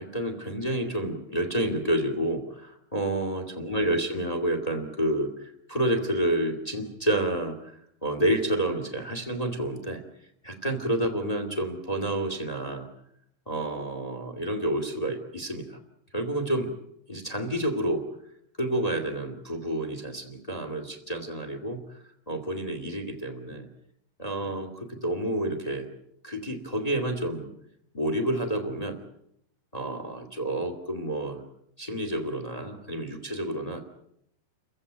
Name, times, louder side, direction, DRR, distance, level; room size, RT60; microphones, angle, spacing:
voice 1, 0.0-7.7 8.0-10.0 10.4-12.9 13.4-15.8 16.1-16.7 17.1-18.0 18.6-23.7 24.2-25.9 26.2-27.5 27.9-29.0 29.7-31.4 31.8-33.8, right 1 dB, 15° left, 6 dB, 1.4 m, -29 dB
29.5 x 15.5 x 9.2 m, 0.74 s
omnidirectional pair, 4.8 m